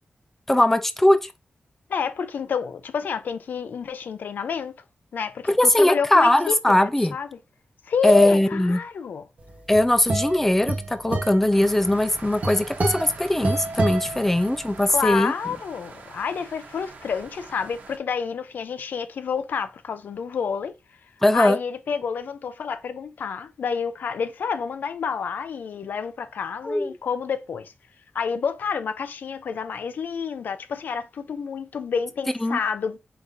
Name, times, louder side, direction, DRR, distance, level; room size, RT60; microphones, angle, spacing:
voice 1, 0.5-1.3 5.6-7.1 8.0-8.8 9.7-15.3 21.2-21.6 26.6-26.9 32.4-32.6, left 1 dB, 10° left, 0.4 m, -20 dB
voice 2, 1.9-4.7 5.1-7.3 7.9-9.2 14.9-20.8 21.3-27.7 28.1-33.0, left 6 dB, 90° left, 0.5 m, -29 dB
sound 1, 9.5-14.9, right 2 dB, 50° right, 1.1 m, -29 dB
sound 2, 11.5-18.0, right 4 dB, 85° right, 1.0 m, -44 dB
4.7 x 3.8 x 2.7 m
wide cardioid pair, 165°, 3 cm